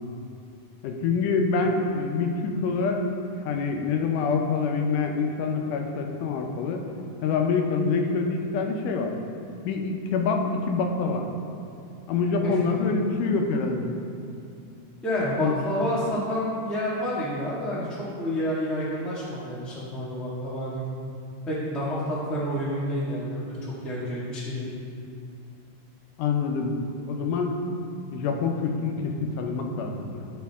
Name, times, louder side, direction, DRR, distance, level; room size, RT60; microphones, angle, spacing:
voice 1, 0.8-3.0 3.4-6.8 7.2-9.1 9.7-11.3 12.1-14.0 15.4-15.5 26.2-26.8 27.1-27.6 28.1-30.3, left 4 dB, 90° left, 3 dB, 2.4 m, -26 dB
voice 2, 12.4-12.7 15.0-20.9 21.5-24.7, equal, ahead, -8 dB, 0.6 m, -29 dB
13.0 x 5.1 x 3.6 m, 2.6 s
omnidirectional pair, 3.6 m